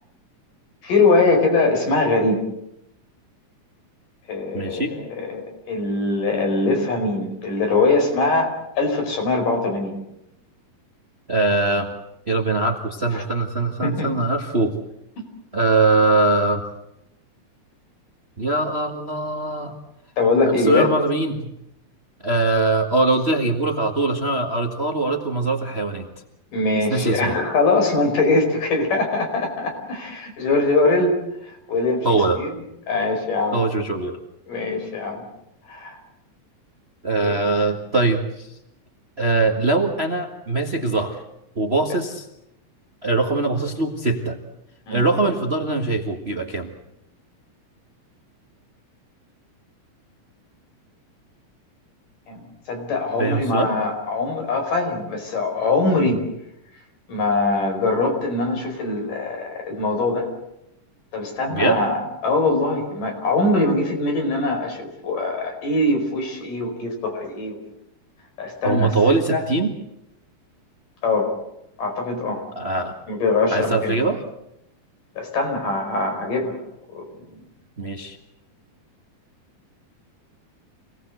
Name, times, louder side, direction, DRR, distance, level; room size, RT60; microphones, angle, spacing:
voice 1, 0.8-2.4 4.3-5.4 5.7-10.0 13.1-13.2 13.8-14.1 20.2-20.9 26.5-31.2 31.4-32.1 32.4-32.5 32.9-33.6 34.5-35.2 35.7-36.0 37.2-37.4 44.9-45.0 52.3-56.2 57.1-60.3 61.1-67.6 68.4-68.9 69.3-69.4 71.0-71.3 71.8-72.4 73.1-74.1 75.2-76.6 76.9-77.1, left 3 dB, 75° left, 3 dB, 6.6 m, -22 dB
voice 2, 4.5-4.9 11.3-11.9 12.3-14.7 15.5-16.6 18.4-19.8 20.6-21.5 22.2-26.1 26.9-27.3 32.0-32.4 33.5-34.2 37.0-38.5 39.2-41.2 41.5-42.3 43.0-44.4 44.9-46.7 53.2-53.7 56.1-56.2 61.5-61.8 68.6-69.7 72.5-73.0 73.5-74.2 77.8-78.2, right 3 dB, 25° right, 3 dB, 1.5 m, -22 dB
27.0 x 19.0 x 8.0 m, 0.82 s
omnidirectional pair, 3.7 m